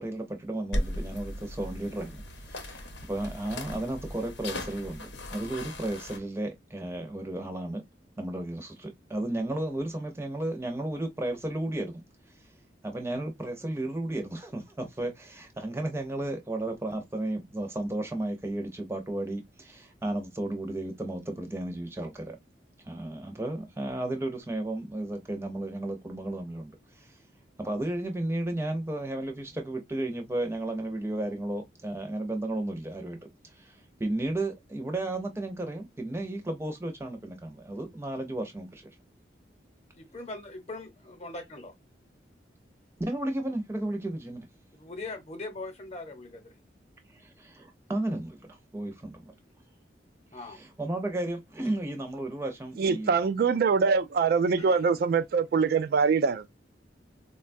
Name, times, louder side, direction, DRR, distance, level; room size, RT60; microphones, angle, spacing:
voice 1, 0.0-7.8 8.2-12.0 12.8-22.4 22.8-26.7 27.0-27.1 27.6-33.2 33.6-33.7 34.0-38.9 43.1-44.5 47.2-49.3 50.6-53.1, right 1 dB, 15° right, 0.6 m, -33 dB
sound 1, 0.7-6.2, left 1 dB, 80° left, 0.8 m, -37 dB
voice 2, 40.0-41.7 44.7-46.5 49.3-49.5 50.3-50.6 54.6-54.8, left 2 dB, 40° left, 0.9 m, -41 dB
voice 3, 52.8-56.5, right 5 dB, 55° right, 0.3 m, -24 dB
3.8 x 2.2 x 2.5 m
head